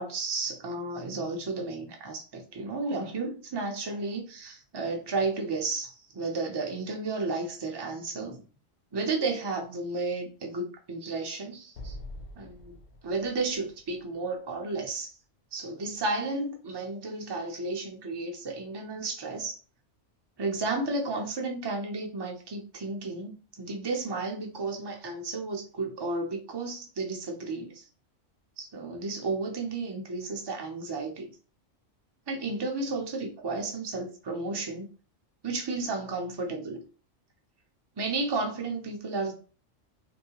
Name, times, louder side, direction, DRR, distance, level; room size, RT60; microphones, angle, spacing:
voice 1, 0.0-8.4 8.9-12.0 12.4-12.7 13.0-15.1 15.5-19.6 20.4-27.9 28.6-31.3 32.3-34.9 35.4-36.8 38.0-39.3, right 3 dB, 35° right, 0.4 m, -33 dB
Explosion, 11.7-15.0, left 1 dB, 60° left, 0.8 m, -45 dB
3.1 x 2.8 x 2.8 m
omnidirectional pair, 1.3 m